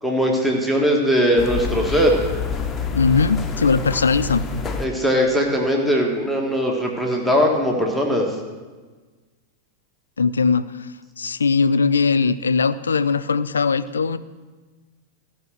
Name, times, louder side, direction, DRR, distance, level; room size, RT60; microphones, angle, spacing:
voice 1, 0.0-2.2 4.8-8.3, equal, 5° right, 0 dB, 1.6 m, -20 dB
sound 1, 1.4-4.8, left 5 dB, 20° left, 0.9 m, -27 dB
voice 2, 2.9-4.6 10.2-10.9 11.2-14.2, left 5 dB, 70° left, 14 dB, 0.4 m, -20 dB
14.5 x 5.6 x 6.3 m, 1.3 s
figure-of-eight pair, 90°, 0 cm